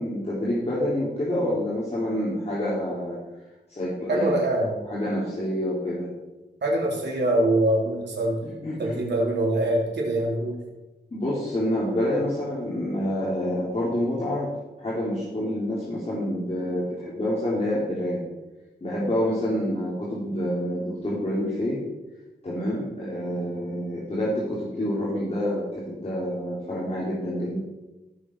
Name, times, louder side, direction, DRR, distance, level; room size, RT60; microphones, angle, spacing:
voice 1, 0.0-3.2 3.7-4.4 4.9-6.1 8.4-9.0 11.1-14.5 14.8-18.2 18.8-21.8 22.4-27.6, left 1 dB, 35° left, -7 dB, 3.4 m, -27 dB
voice 2, 4.1-4.7 6.6-8.4 8.8-10.6, right 1 dB, 85° right, -1 dB, 3.2 m, -24 dB
16.0 x 7.4 x 4.7 m, 1.1 s
wide cardioid pair, 115°, 18 cm